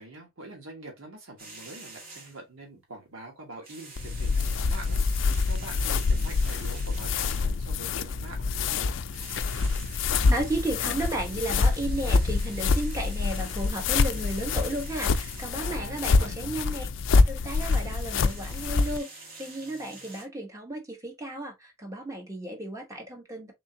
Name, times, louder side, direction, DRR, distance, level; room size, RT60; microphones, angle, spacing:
voice 1, 0.0-8.9 15.5-16.6, right 2 dB, 85° right, 1.4 m, -44 dB
sound 1, 1.4-2.5 3.5-7.7 9.0-15.7 17.4-20.3, right 3 dB, 45° right, 1.6 m, -47 dB
sound 2, 4.0-19.0, left 4 dB, 65° left, 0.4 m, -26 dB
voice 2, 9.9-23.5, right 1 dB, 15° right, 1.2 m, -34 dB
3.7 x 3.5 x 2.8 m
head